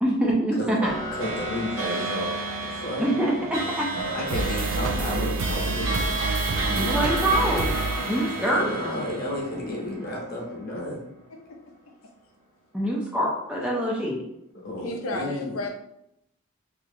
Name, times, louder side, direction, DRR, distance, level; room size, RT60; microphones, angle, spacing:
voice 1, 0.0-0.9 3.0-3.9 6.7-7.7 8.0-8.7 12.7-14.2, right 1 dB, 5° right, -3 dB, 0.4 m, -25 dB
voice 2, 0.6-3.4 4.1-7.0 8.4-11.0 14.5-15.6, left 1 dB, 45° left, -3 dB, 0.9 m, -32 dB
sound 1, 0.8-10.5, right 2 dB, 65° right, 0.7 m, -31 dB
sound 2, 4.3-9.0, right 3 dB, 80° right, 0.3 m, -29 dB
voice 3, 6.8-7.2 14.8-15.7, left 2 dB, 75° left, 2 dB, 0.5 m, -33 dB
3.0 x 2.6 x 2.6 m, 0.78 s
head